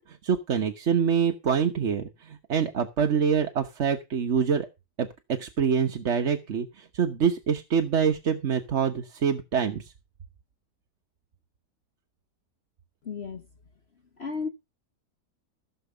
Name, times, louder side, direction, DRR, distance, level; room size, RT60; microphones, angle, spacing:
voice 1, 0.1-4.7 5.0-5.1 5.4-9.9, right 7 dB, 50° right, 1.3 m, -25 dB
voice 2, 13.0-13.5 14.2-14.5, left 5 dB, 45° left, 1.2 m, -33 dB
15.5 x 7.0 x 5.5 m
omnidirectional pair, 1.8 m